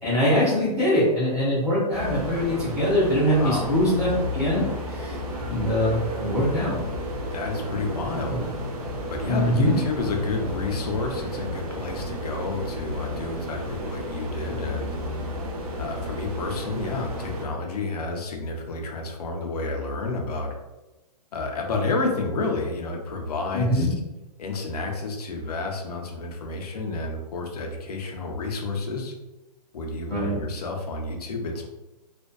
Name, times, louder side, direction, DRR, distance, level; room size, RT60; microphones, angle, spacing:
voice 1, 0.0-6.8 8.3-8.4 9.2-9.8 23.5-23.9 30.1-30.3, equal, ahead, -16 dB, 0.4 m, -23 dB
sound 1, 1.9-17.5, equal, 65° right, 0.6 m, -32 dB
voice 2, 3.4-3.8 7.3-8.5 9.1-15.0 15.8-20.6 21.3-23.9 24.4-29.1 29.7-31.7, left 3 dB, 65° left, 2 dB, 0.6 m, -30 dB
2.5 x 2.2 x 2.2 m, 1.1 s
hypercardioid pair, 180°, 21 cm